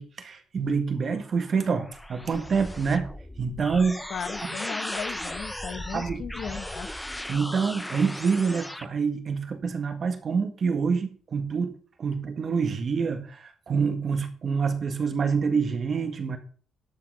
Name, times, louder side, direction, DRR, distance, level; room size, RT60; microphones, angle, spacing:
voice 1, 0.0-4.1 5.9-6.2 7.3-16.4, right 5 dB, 45° right, 1.7 m, -27 dB
sound 1, 1.2-8.9, left 1 dB, 5° left, 0.6 m, -37 dB
voice 2, 4.1-6.9, left 7 dB, 55° left, 0.9 m, -36 dB
12.0 x 5.8 x 5.6 m
cardioid pair, 135°, 0 cm